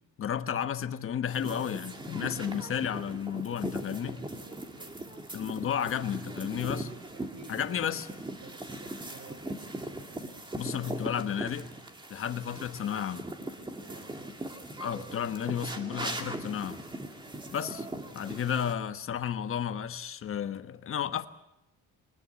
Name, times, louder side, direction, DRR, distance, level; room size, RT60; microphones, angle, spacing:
voice 1, 0.2-4.2 5.3-6.9 7.5-8.1 10.6-11.7 12.1-13.3 14.8-16.8 17.5-17.8 18.1-21.3, left 8 dB, 45° left, 1.2 m, -32 dB
sound 1, 1.3-18.7, right 1 dB, 15° right, 2.4 m, -40 dB
voice 2, 2.4-2.7 3.5-5.1 7.1-9.7 12.2-12.3 13.8-14.1 17.2-17.5, right 5 dB, 75° right, 3.7 m, -53 dB
23.5 x 20.0 x 8.3 m
cardioid pair, 120°, 30 cm